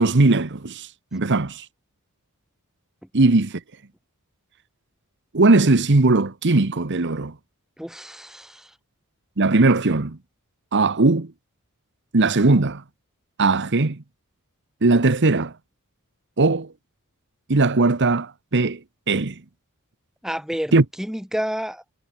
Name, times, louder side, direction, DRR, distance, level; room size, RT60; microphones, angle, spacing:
voice 1, 0.0-1.7 3.1-3.6 5.3-7.3 9.4-10.2 10.7-11.3 12.1-12.8 13.4-14.0 14.8-15.5 16.4-16.7 17.5-18.8 19.1-19.4 20.7-20.8, right 3 dB, 55° right, 1.1 m, -19 dB
voice 2, 7.8-8.7 20.2-21.8, equal, ahead, 1.7 m, -30 dB
head